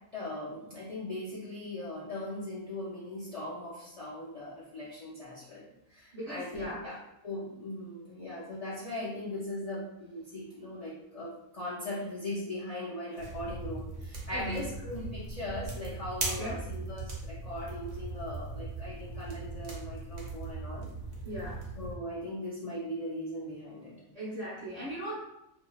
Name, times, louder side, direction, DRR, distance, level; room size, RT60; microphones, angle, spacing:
voice 1, 0.1-7.0 7.2-20.9 21.8-24.0, left 1 dB, 70° left, -8 dB, 0.3 m, -39 dB
voice 2, 6.1-6.8 14.3-14.6 16.2-16.6 21.2-21.6 24.1-25.1, right 1 dB, 30° right, -7 dB, 0.9 m, -38 dB
sound 1, 13.2-22.0, right 3 dB, 60° right, 0.9 m, -39 dB
2.8 x 2.6 x 2.3 m, 0.82 s
omnidirectional pair, 1.5 m